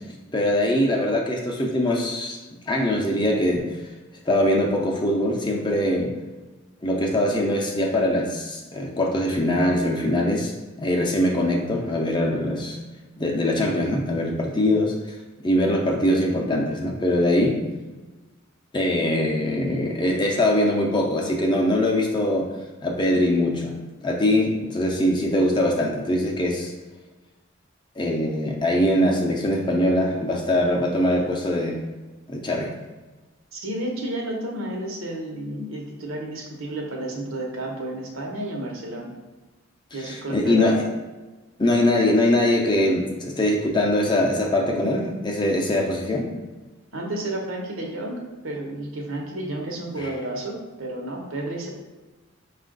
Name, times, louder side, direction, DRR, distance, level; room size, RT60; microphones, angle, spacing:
voice 1, 0.3-2.4 2.7-3.7 4.3-6.1 6.8-10.5 10.8-12.8 13.2-14.9 15.4-17.6 18.7-22.5 22.8-23.7 24.0-26.7 28.0-31.8 32.3-32.7 39.9-40.8 41.6-46.3 50.0-50.1, left 1 dB, 25° left, 0 dB, 0.5 m, -22 dB
voice 2, 33.5-39.1 39.9-40.8 46.9-51.7, right 1 dB, 85° right, 0 dB, 0.9 m, -31 dB
5.2 x 2.4 x 3.8 m, 1.2 s
head